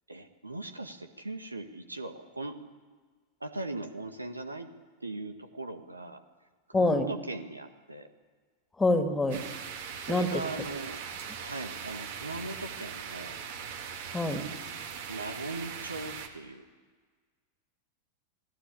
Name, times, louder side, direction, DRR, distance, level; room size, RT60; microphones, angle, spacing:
voice 1, 0.1-2.6 3.4-4.7 5.0-6.2 6.7-8.1 10.0-11.0 11.4-13.4 15.1-16.6, right 2 dB, 80° right, 8 dB, 1.7 m, -39 dB
voice 2, 6.7-7.1 8.8-9.4 10.1-10.3 14.1-14.5, left 2 dB, 10° left, 7 dB, 2.4 m, -25 dB
sound 1, 9.3-16.3, right 7 dB, 55° right, 2.6 m, -40 dB
28.0 x 18.0 x 8.6 m, 1.5 s
figure-of-eight pair, 90°, 0 cm